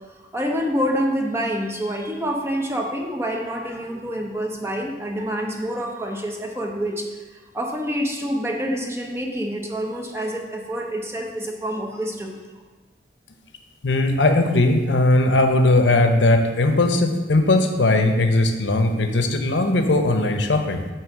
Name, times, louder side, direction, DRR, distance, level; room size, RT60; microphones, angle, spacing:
voice 1, 0.1-7.1 7.3-12.3, equal, 15° right, 1 dB, 0.9 m, -27 dB
voice 2, 13.8-20.8, left 2 dB, 90° left, 6 dB, 0.8 m, -18 dB
8.9 x 3.2 x 6.1 m, 1.2 s
head